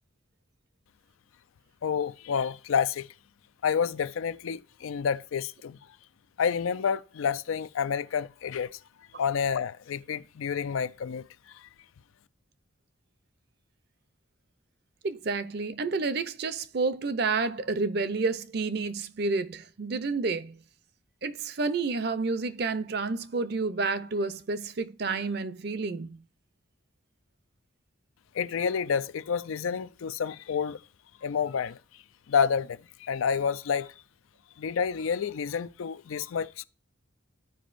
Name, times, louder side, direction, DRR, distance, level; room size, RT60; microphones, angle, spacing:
voice 1, 1.8-3.1 3.6-5.8 6.4-8.7 9.2-11.2 28.3-30.8 31.2-31.8 32.3-33.9 34.6-36.6, left 6 dB, 85° left, 0.4 m, -29 dB
voice 2, 15.0-20.6 21.2-26.2, right 4 dB, 50° right, 0.5 m, -30 dB
14.0 x 5.1 x 2.5 m
head